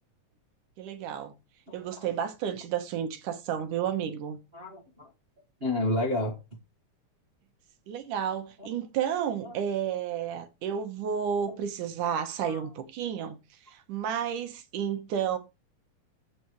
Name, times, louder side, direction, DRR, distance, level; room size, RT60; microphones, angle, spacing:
voice 1, 0.8-1.3 1.7-4.4 7.9-13.4 13.7-15.4, right 8 dB, 80° right, 2.7 m, -31 dB
voice 2, 1.7-2.0 4.5-5.1 5.6-6.4 8.6-8.7 9.4-9.5 11.5-11.6 12.4-12.6, left 1 dB, 35° right, 1.0 m, -31 dB
15.0 x 5.9 x 3.1 m
omnidirectional pair, 3.6 m